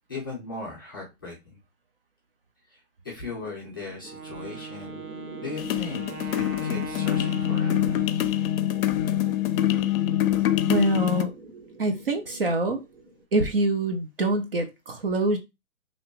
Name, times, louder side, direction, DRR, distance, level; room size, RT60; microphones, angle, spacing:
voice 1, 0.1-1.6 2.7-5.0 5.4-8.0, left 3 dB, 15° left, 0.4 m, -38 dB
sound 1, 3.4-13.2, right 1 dB, 65° right, 1.1 m, -46 dB
Wind instrument woodwind instrument, 4.0-8.9, right 6 dB, 85° right, 0.7 m, -41 dB
sound 2, 5.6-11.2, left 12 dB, 70° left, 0.5 m, -25 dB
voice 2, 10.7-11.3 11.8-12.8 13.3-15.4, right 2 dB, 45° right, 0.4 m, -25 dB
2.9 x 2.1 x 2.8 m
hypercardioid pair, 150°, 43 cm